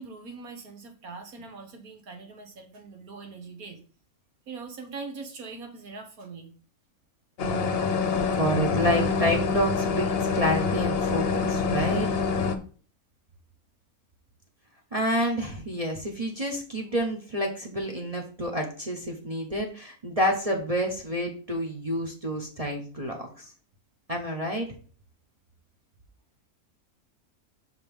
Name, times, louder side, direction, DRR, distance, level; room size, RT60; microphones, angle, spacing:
voice 1, 0.0-3.8 4.5-6.5, right 4 dB, 85° right, 5 dB, 1.9 m, -42 dB
sound 1, 7.4-12.6, left 5 dB, 50° left, 1.0 m, -26 dB
voice 2, 8.1-12.1 14.9-23.5 24.1-24.7, equal, 25° right, 0 dB, 1.2 m, -29 dB
5.8 x 5.4 x 5.4 m, 0.41 s
omnidirectional pair, 1.5 m